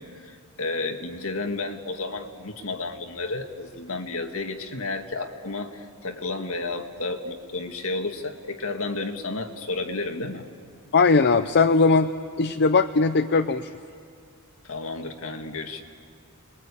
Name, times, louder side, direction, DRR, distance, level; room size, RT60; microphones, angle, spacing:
voice 1, 0.0-10.5 14.6-15.8, left 3 dB, 65° left, 4 dB, 1.9 m, -32 dB
voice 2, 10.9-12.1 12.4-13.7, left 4 dB, 50° left, 9 dB, 0.6 m, -19 dB
30.0 x 22.0 x 8.5 m, 2.2 s
head